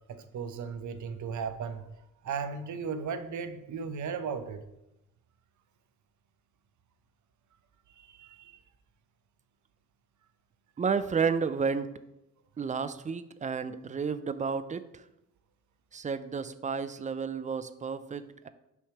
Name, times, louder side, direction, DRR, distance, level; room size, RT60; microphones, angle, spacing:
voice 1, 0.1-1.9 2.2-4.6 7.9-8.6, right 6 dB, 55° right, 10 dB, 0.8 m, -36 dB
voice 2, 10.8-11.9 12.6-14.8 15.9-18.5, right 5 dB, 20° right, 12 dB, 0.4 m, -31 dB
6.0 x 3.2 x 5.8 m, 0.88 s
supercardioid pair, 70°, 36 cm